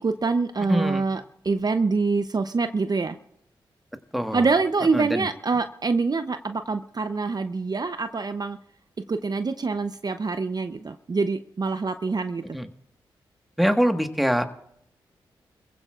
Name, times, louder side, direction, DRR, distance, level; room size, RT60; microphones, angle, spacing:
voice 1, 0.0-3.2 4.3-8.6 9.0-12.6, right 4 dB, 45° right, 9 dB, 0.7 m, -25 dB
voice 2, 0.7-1.0 4.1-4.4 4.9-5.3 12.5-12.7 13.6-14.4, equal, ahead, 6 dB, 1.5 m, -23 dB
25.5 x 15.5 x 2.5 m, 0.73 s
supercardioid pair, 40°, 10 cm